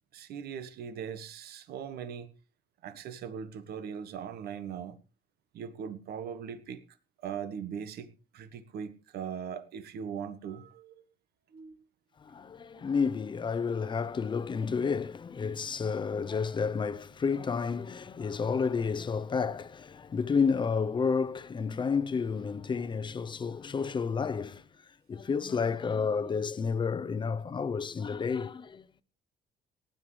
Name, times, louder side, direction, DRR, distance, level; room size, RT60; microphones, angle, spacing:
voice 1, 0.1-2.3 2.8-5.0 5.5-6.8 7.2-10.9 11.5-11.8 12.7-12.9, right 7 dB, 70° right, 1.4 m, -40 dB
voice 2, 12.2-24.6 25.1-28.8, left 5 dB, 30° left, 0.8 m, -30 dB
18.5 x 10.5 x 3.3 m
cardioid pair, 110°, 17 cm